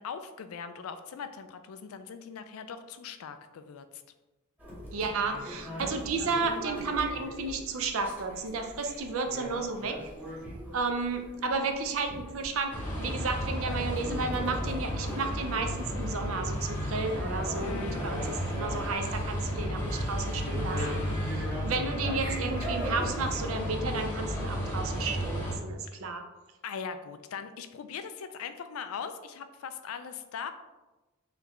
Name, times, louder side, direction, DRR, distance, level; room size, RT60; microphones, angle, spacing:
voice 1, 0.0-4.0 17.6-18.1 25.9-26.0 26.6-30.5, left 6 dB, 90° left, 9 dB, 0.4 m, -40 dB
sound 1, 4.6-23.7, equal, 10° right, 1.1 m, -41 dB
voice 2, 4.9-10.0 10.7-26.2, right 4 dB, 70° right, 6 dB, 0.5 m, -32 dB
sound 2, 12.7-25.6, equal, 10° left, 0.9 m, -33 dB
3.9 x 3.3 x 3.0 m, 1.1 s
head